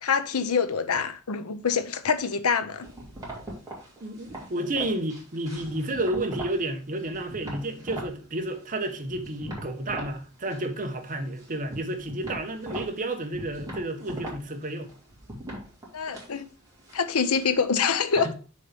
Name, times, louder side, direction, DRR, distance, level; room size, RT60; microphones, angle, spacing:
voice 1, 0.0-2.9 15.9-16.4 16.9-18.3, left 6 dB, 75° left, 0.7 m, -25 dB
sound 1, 2.8-6.6 7.0-8.1 8.5-10.2 10.4-11.1 11.4-17.6, right 1 dB, 15° right, 2.7 m, -40 dB
voice 2, 4.0-14.9, right 1 dB, 40° right, 1.1 m, -31 dB
6.5 x 4.2 x 5.2 m
head